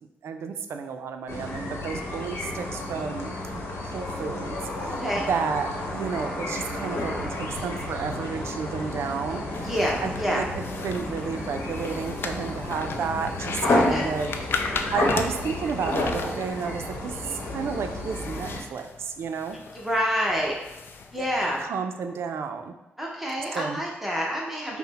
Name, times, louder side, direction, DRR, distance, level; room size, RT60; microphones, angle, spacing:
voice 1, 0.2-5.0 5.3-9.7 10.0-19.6 21.2-22.7 23.5-23.8, right 6 dB, 75° right, 7 dB, 0.4 m, -32 dB
sound 1, 1.3-18.6, left 1 dB, 75° left, 0.9 m, -31 dB
sound 2, 9.5-21.6, left 4 dB, 60° left, 0.4 m, -37 dB
voice 2, 9.6-10.4 13.8-14.1 19.7-20.5 21.1-21.6 23.0-24.7, equal, 5° right, -3 dB, 0.8 m, -27 dB
5.6 x 2.1 x 4.1 m, 1.0 s
cardioid pair, 100°, 4 cm